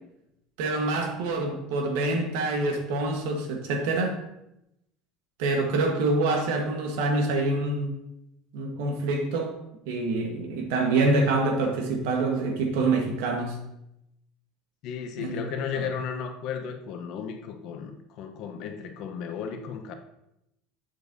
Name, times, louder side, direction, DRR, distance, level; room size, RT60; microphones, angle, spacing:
voice 1, 0.6-4.2 5.4-7.9 8.5-9.5 9.9-13.6 15.2-15.4 15.8-15.9, right 2 dB, 80° right, 3 dB, 1.4 m, -26 dB
voice 2, 14.8-19.9, left 7 dB, 60° left, 6 dB, 0.9 m, -34 dB
7.8 x 7.0 x 2.7 m, 0.86 s
supercardioid pair, 105°, 0 cm